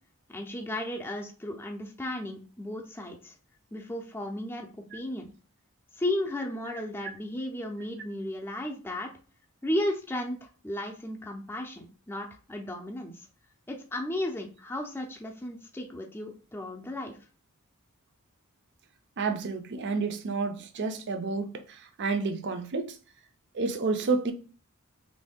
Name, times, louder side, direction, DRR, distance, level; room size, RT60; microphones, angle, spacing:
voice 1, 0.3-3.3 3.7-4.7 4.9-5.3 6.0-9.1 9.6-13.3 13.7-17.2, left 1 dB, 10° left, 0.5 m, -34 dB
voice 2, 19.2-22.9 23.5-24.3, right 4 dB, 55° right, 0.5 m, -30 dB
3.1 x 2.6 x 3.5 m
head